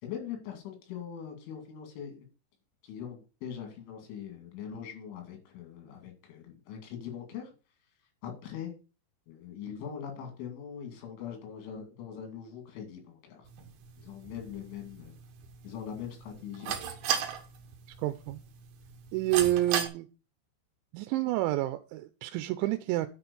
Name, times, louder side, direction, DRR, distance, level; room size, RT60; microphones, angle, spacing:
voice 1, 0.0-2.3 2.8-7.5 8.2-8.7 9.3-13.5 14.0-15.2 15.6-17.0, left 8 dB, 85° left, 4.7 m, -42 dB
sound 1, 13.5-19.9, right 8 dB, 70° right, 2.6 m, -37 dB
voice 2, 18.0-18.4 19.1-20.1 20.9-23.1, right 15 dB, 85° right, 2.8 m, -29 dB
9.6 x 4.4 x 6.9 m
omnidirectional pair, 5.4 m